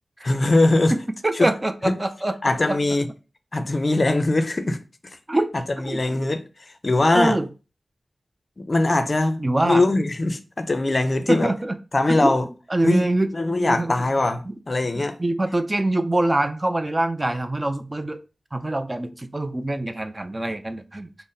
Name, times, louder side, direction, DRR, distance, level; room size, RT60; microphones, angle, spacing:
voice 1, 0.2-0.9 1.3-1.5 1.9-2.0 2.4-3.1 3.5-4.8 5.5-6.4 6.8-7.4 8.6-11.5 11.9-12.4 12.8-13.1 13.3-15.2, left 2 dB, 45° left, 0.4 m, -21 dB
voice 2, 0.9-2.4 2.7-2.8 5.3-5.5 5.8-6.2 7.1-7.5 9.4-9.8 11.3-11.8 12.1-12.3 12.7-13.3 13.6-13.9 14.5-14.6 15.2-18.2 18.5-21.1, right 1 dB, 25° right, 0.4 m, -24 dB
4.0 x 2.0 x 3.8 m
wide cardioid pair, 85°, 0 cm